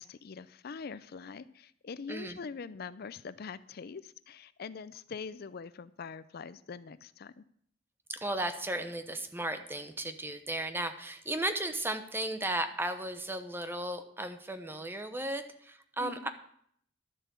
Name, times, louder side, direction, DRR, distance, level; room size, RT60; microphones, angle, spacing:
voice 1, 0.0-7.4 16.0-16.3, left 5 dB, 55° left, 15 dB, 0.4 m, -43 dB
voice 2, 2.1-2.4 8.1-16.3, right 1 dB, 10° right, 8 dB, 0.9 m, -35 dB
12.0 x 7.4 x 6.9 m, 0.65 s
head